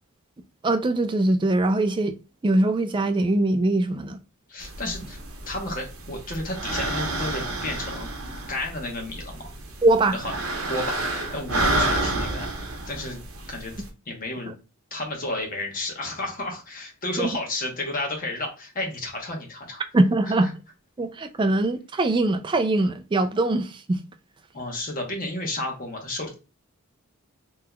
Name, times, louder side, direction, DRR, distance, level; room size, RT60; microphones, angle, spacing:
voice 1, 0.6-2.2 2.4-4.2 9.8-10.2 17.2-17.3 19.9-20.5 21.0-24.0, right 2 dB, 20° right, 0.3 m, -22 dB
voice 2, 4.5-5.2 5.5-8.1 8.5-9.5 10.1-10.2 10.7-12.5 12.9-13.2 13.5-13.7 14.1-14.5 14.9-19.8 20.3-20.5 24.5-26.3, left 2 dB, 40° left, 1.0 m, -32 dB
sound 1, 4.6-13.9, right 1 dB, 70° right, 0.8 m, -30 dB
3.8 x 2.9 x 2.2 m
head